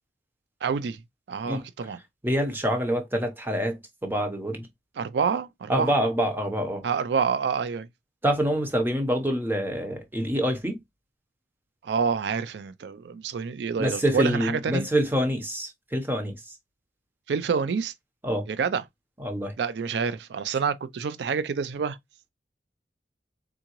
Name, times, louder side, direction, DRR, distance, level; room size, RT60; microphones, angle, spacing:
voice 1, 0.6-1.0 1.3-2.0 5.0-5.9 6.8-7.9 11.8-14.9 17.3-17.9 18.5-18.8 19.6-22.0, right 6 dB, 70° right, 0.4 m, -27 dB
voice 2, 2.2-4.7 5.7-6.8 8.2-10.8 13.8-16.4 18.2-18.4 19.2-19.5, equal, 10° right, 0.8 m, -26 dB
3.7 x 3.6 x 3.0 m
head